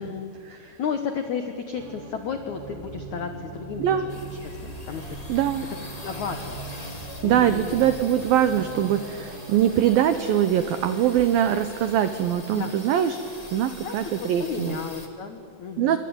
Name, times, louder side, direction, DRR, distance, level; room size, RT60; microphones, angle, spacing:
voice 1, 0.0-5.2 5.7-6.6 7.2-7.7 12.5-12.7 13.8-16.0, left 6 dB, 80° left, 6 dB, 1.7 m, -33 dB
sound 1, 1.7-10.1, right 4 dB, 60° right, 2.3 m, -41 dB
sound 2, 4.1-15.1, left 1 dB, 20° left, 0.9 m, -44 dB
sound 3, 4.4-12.2, equal, 20° right, 1.3 m, -45 dB
voice 2, 5.3-5.6 7.2-13.2 13.5-14.8 15.8-16.0, right 10 dB, 85° right, 10 dB, 2.0 m, -22 dB
27.5 x 25.0 x 8.8 m, 2.4 s
omnidirectional pair, 5.5 m